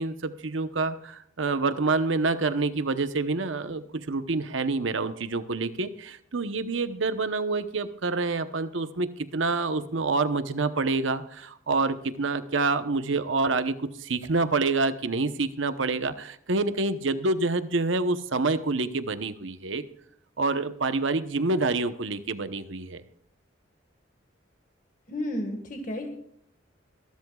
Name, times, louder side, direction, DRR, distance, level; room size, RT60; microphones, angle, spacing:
voice 1, 0.0-19.9 20.4-23.0, right 3 dB, 75° right, 11 dB, 0.9 m, -27 dB
voice 2, 25.1-26.1, left 1 dB, 40° left, 3 dB, 1.7 m, -32 dB
24.0 x 13.0 x 2.4 m, 0.68 s
head